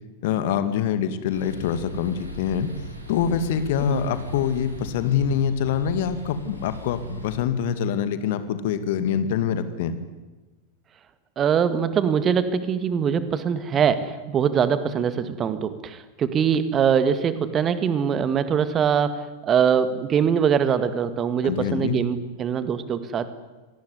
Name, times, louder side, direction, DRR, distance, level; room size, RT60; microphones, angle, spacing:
voice 1, 0.2-2.7 3.1-10.0 21.4-22.0, left 8 dB, 50° left, 11 dB, 2.3 m, -25 dB
sound 1, 1.3-7.4, left 1 dB, 80° right, 5.6 m, -40 dB
voice 2, 11.4-23.3, right 7 dB, 25° right, 13 dB, 2.0 m, -23 dB
26.5 x 19.5 x 9.7 m, 1.2 s
figure-of-eight pair, 90°, 0 cm